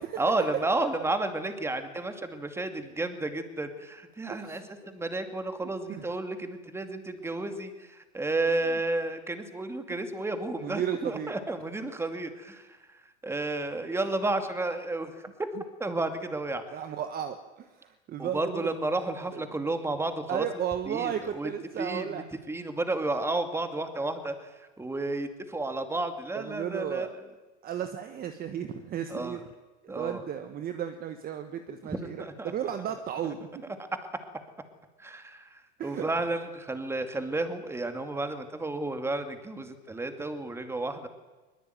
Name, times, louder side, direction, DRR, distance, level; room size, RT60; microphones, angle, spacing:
voice 1, 0.2-15.1 15.8-16.8 18.2-20.5 20.9-21.5 21.8-27.1 29.1-29.4 29.9-30.2 31.8-32.5 33.2-33.3 35.0-41.1, right 2 dB, 5° right, 8 dB, 2.4 m, -32 dB
voice 2, 4.3-4.7 5.9-6.0 9.9-10.0 10.6-11.3 16.7-18.7 19.0-19.1 19.3-19.4 20.3-22.3 26.3-27.1 27.6-29.4 29.8-33.5 35.8-36.1, right 9 dB, 25° right, 8 dB, 1.4 m, -34 dB
22.5 x 21.0 x 9.3 m, 1.2 s
supercardioid pair, 140°, 34 cm